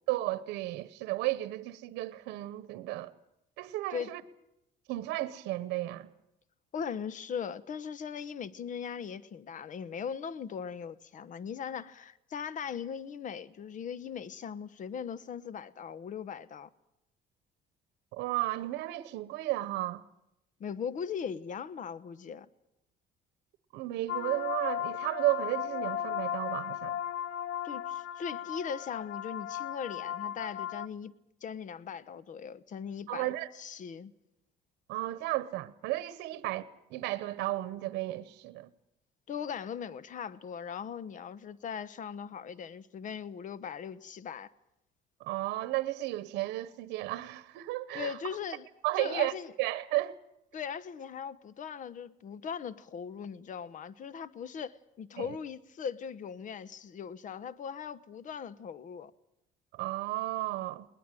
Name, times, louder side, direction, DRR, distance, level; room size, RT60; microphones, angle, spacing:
voice 1, 0.1-3.1 3.6-4.2 4.9-6.1 18.1-20.0 23.7-27.0 33.1-33.5 34.9-36.6 36.9-38.7 45.2-48.2 48.8-49.3 49.6-50.1 55.2-55.4 59.7-60.9, right 17 dB, 90° right, 0.9 m, -33 dB
voice 2, 6.7-16.7 20.6-22.5 27.6-31.1 31.4-34.1 39.3-44.5 47.9-48.7 49.0-49.5 50.5-59.1, left 7 dB, 50° left, 1.0 m, -39 dB
sound 1, 24.1-30.9, left 10 dB, 80° left, 0.8 m, -36 dB
21.5 x 19.0 x 9.1 m
cardioid pair, 110°, 17 cm